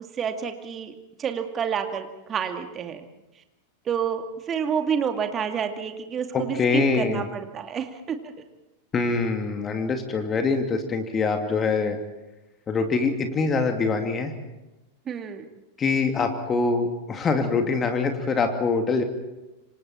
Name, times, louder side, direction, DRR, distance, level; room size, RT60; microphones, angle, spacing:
voice 1, 0.2-3.0 3.9-8.3 15.1-15.4, right 7 dB, 25° right, 6 dB, 2.3 m, -29 dB
voice 2, 6.3-7.3 8.9-12.0 12.7-14.3 15.8-19.0, left 4 dB, 20° left, 5 dB, 2.5 m, -24 dB
28.0 x 25.0 x 4.4 m, 1.0 s
figure-of-eight pair, 90°, 0 cm